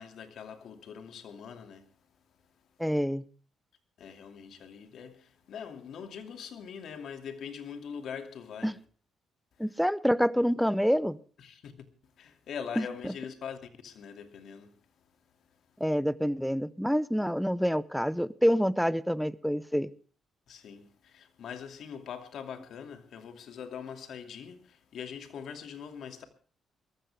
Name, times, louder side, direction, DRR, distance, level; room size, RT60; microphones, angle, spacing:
voice 1, 0.0-1.9 4.0-8.8 11.4-11.9 12.2-14.8 20.5-26.2, left 7 dB, 70° left, 2.6 m, -43 dB
voice 2, 2.8-3.2 8.6-8.7 9.6-11.2 12.8-13.1 15.8-19.9, equal, ahead, 0.8 m, -27 dB
21.5 x 14.5 x 3.5 m
cardioid pair, 90°, 0 cm